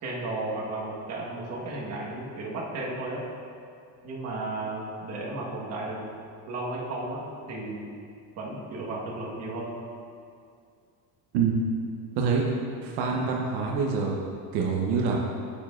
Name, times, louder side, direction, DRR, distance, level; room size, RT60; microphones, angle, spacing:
voice 1, 0.0-3.2 4.0-6.0 6.5-7.8 8.4-9.7, right 2 dB, 40° right, -4 dB, 1.4 m, -34 dB
voice 2, 12.8-14.2 14.5-15.2, right 5 dB, 80° right, -1 dB, 0.9 m, -25 dB
9.0 x 7.2 x 2.5 m, 2.4 s
cardioid pair, 170°, 39 cm